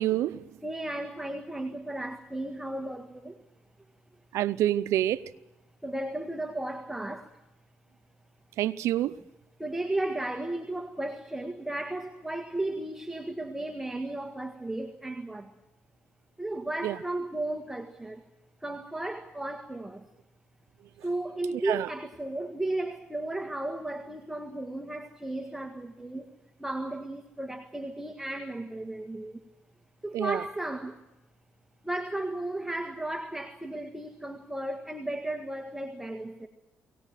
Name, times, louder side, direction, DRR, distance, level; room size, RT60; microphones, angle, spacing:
voice 1, 0.0-0.6 4.3-5.2 8.6-9.2 16.8-17.0 21.6-21.9 30.1-30.4, right 13 dB, 85° right, 0.7 m, -27 dB
voice 2, 0.6-3.4 5.8-7.3 9.6-15.5 16.4-18.2 18.6-20.1 21.0-26.3 26.6-29.4 30.0-31.0 31.8-36.5, right 1 dB, 5° right, 1.7 m, -34 dB
23.0 x 18.0 x 9.2 m
cardioid pair, 75°, 5 cm